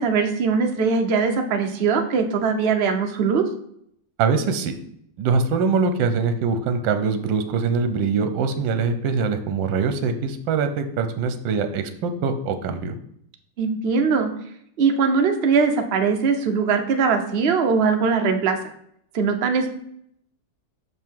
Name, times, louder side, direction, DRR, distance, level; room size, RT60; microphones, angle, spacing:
voice 1, 0.0-3.4 13.6-14.3 14.8-18.6 19.1-19.7, right 5 dB, 50° right, 5 dB, 0.7 m, -21 dB
voice 2, 4.2-4.7 5.2-12.9, right 5 dB, 75° right, 8 dB, 1.4 m, -23 dB
6.2 x 5.5 x 4.5 m, 0.69 s
omnidirectional pair, 2.1 m